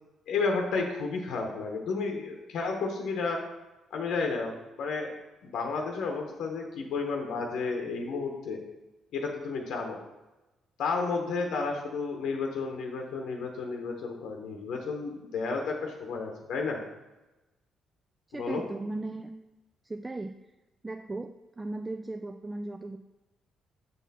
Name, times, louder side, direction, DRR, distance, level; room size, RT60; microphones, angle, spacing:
voice 1, 0.3-3.4 3.9-5.1 5.4-8.6 9.1-10.0 10.8-16.8 18.3-18.6, left 4 dB, 80° left, 2 dB, 0.8 m, -32 dB
voice 2, 18.3-19.3 19.8-20.3 20.8-23.0, right 2 dB, 20° right, 7 dB, 0.3 m, -37 dB
7.0 x 4.2 x 4.1 m, 1.0 s
cardioid pair, 90°, 0 cm